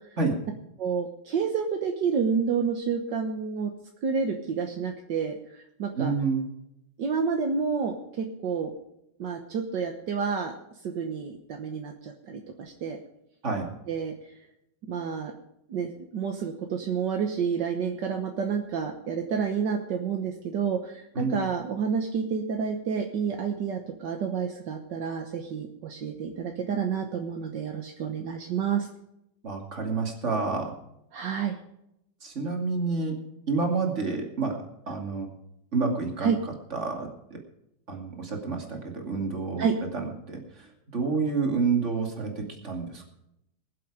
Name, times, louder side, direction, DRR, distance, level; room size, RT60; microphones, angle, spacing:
voice 1, 0.8-3.7 4.0-5.4 5.8-6.1 7.0-8.7 9.2-10.5 10.8-13.0 13.9-14.1 14.9-15.3 15.7-28.9 31.1-31.6 36.2-36.4 39.6-39.7, right 6 dB, 70° right, 3 dB, 1.8 m, -29 dB
voice 2, 5.9-6.4 13.4-13.7 21.1-21.3 29.4-30.7 32.2-33.1 33.5-34.6 34.9-35.3 35.7-36.3 36.7-37.1 37.9-39.6 39.9-40.4 40.9-43.1, right 4 dB, 40° right, 2 dB, 2.7 m, -28 dB
21.5 x 7.7 x 4.9 m, 0.81 s
omnidirectional pair, 2.0 m